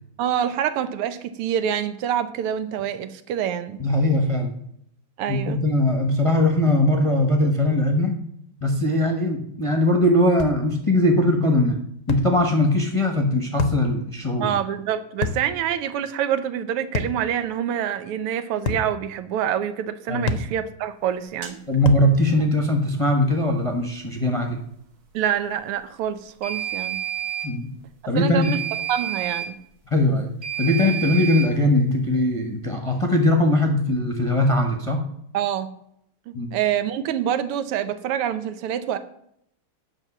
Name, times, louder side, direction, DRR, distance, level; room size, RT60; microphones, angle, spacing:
voice 1, 0.2-3.8 5.2-5.6 14.4-21.6 25.1-27.0 28.2-28.6 28.9-29.6 35.3-35.7 36.3-39.0, right 9 dB, 85° right, 12 dB, 1.7 m, -26 dB
voice 2, 3.8-4.5 5.3-8.2 8.6-11.8 12.1-14.6 20.1-20.3 21.7-24.6 27.4-27.7 28.1-28.5 29.9-30.3 30.6-35.0 36.3-36.6, left 1 dB, 20° left, 2 dB, 0.9 m, -20 dB
sound 1, 10.4-10.6 12.1-12.3 13.6-13.8 15.2-15.5 16.9-17.2 18.7-18.9 20.3-20.5 21.9-22.1, left 5 dB, 60° left, 0.8 m, -26 dB
sound 2, 21.4-21.6 26.4-27.5 28.4-29.5 30.4-31.5, right 11 dB, 50° right, 1.8 m, -29 dB
9.1 x 5.7 x 7.2 m, 0.71 s
omnidirectional pair, 2.4 m